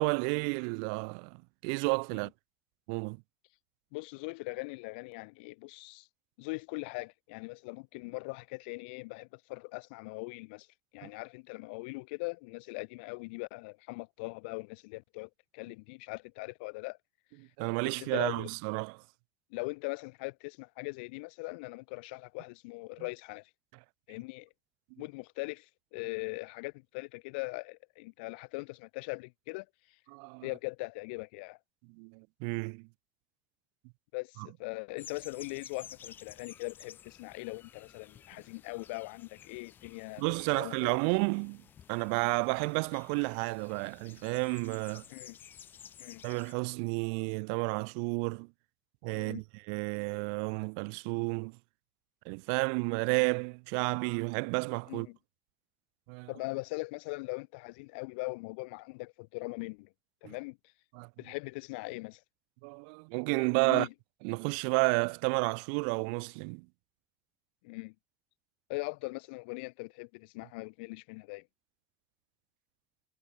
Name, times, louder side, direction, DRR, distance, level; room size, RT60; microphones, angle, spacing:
voice 1, 0.0-2.3 2.9-3.2 11.0-11.1 17.6-19.0 30.1-30.5 32.0-32.9 34.4-34.5 40.2-41.6 41.9-45.0 46.2-48.5 49.0-51.6 52.2-55.1 56.1-56.3 60.2-60.3 60.9-61.1 62.6-63.9 64.2-66.6, right 40 dB or more, 80° right, 1.6 m, -31 dB
voice 2, 3.9-6.1 6.4-10.7 10.9-17.0 17.8-18.5 19.5-23.5 24.1-24.5 25.0-29.7 30.4-31.6 34.1-40.2 40.6-41.0 45.1-45.4 46.0-46.2 49.1-49.4 54.9-55.2 56.3-59.9 60.2-60.6 61.2-62.2 63.7-63.9 67.6-67.9 68.7-71.5, left 27 dB, 85° left, 2.7 m, -40 dB
sound 1, 35.0-46.5, left 9 dB, 40° left, 5.1 m, -53 dB
supercardioid pair, 110°, 5 cm